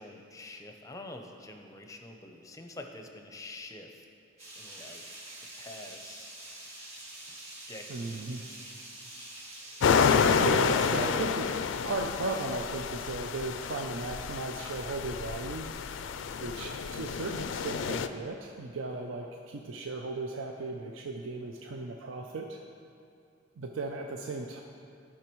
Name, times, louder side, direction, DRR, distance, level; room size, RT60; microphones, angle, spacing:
voice 1, 0.0-4.1 4.6-5.0 5.6-6.3 7.7-8.2 10.6-10.8, left 2 dB, 15° left, 4 dB, 0.6 m, -46 dB
sound 1, 4.4-10.4, right 1 dB, 35° right, 1.8 m, -46 dB
voice 2, 7.9-8.5 10.4-11.5 11.8-15.7 16.4-22.6 23.6-24.6, right 3 dB, 80° right, 2 dB, 0.5 m, -36 dB
sound 2, 9.8-18.1, left 6 dB, 70° left, 0.3 m, -29 dB
13.5 x 5.7 x 3.0 m, 2.5 s
head